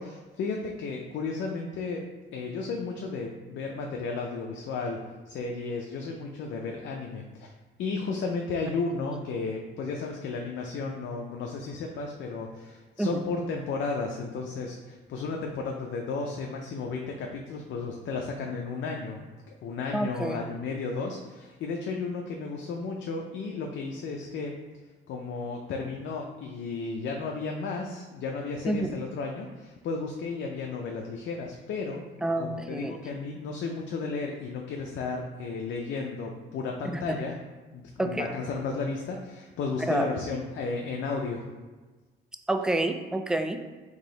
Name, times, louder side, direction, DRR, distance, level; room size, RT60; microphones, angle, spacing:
voice 1, 0.0-2.0 2.3-7.5 7.8-19.3 19.6-24.5 25.1-32.0 32.4-37.4 37.7-41.4, left 4 dB, 70° left, 1 dB, 0.5 m, -33 dB
voice 2, 19.9-20.4 28.7-28.8 32.2-33.0 38.0-38.3 39.8-40.1 42.5-43.6, right 1 dB, 5° right, 6 dB, 0.3 m, -28 dB
3.9 x 2.9 x 3.8 m, 1.3 s
cardioid pair, 90°, 20 cm